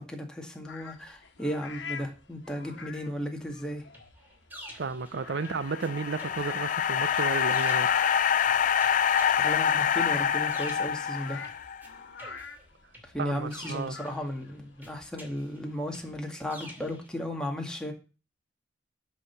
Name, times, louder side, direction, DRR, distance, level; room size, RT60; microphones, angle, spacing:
voice 1, 0.0-3.8 9.4-11.4 13.0-17.9, equal, 5° left, 2.0 m, -35 dB
sound 1, 0.6-16.1, left 5 dB, 75° left, 1.3 m, -46 dB
sound 2, 3.9-5.9 6.2-11.9 12.2-14.4 14.8-17.1, equal, 10° right, 2.8 m, -49 dB
voice 2, 4.7-7.9 13.2-14.0, right 4 dB, 65° right, 0.6 m, -33 dB
sound 3, 5.4-11.8, left 8 dB, 45° left, 0.4 m, -26 dB
7.9 x 6.4 x 7.1 m
head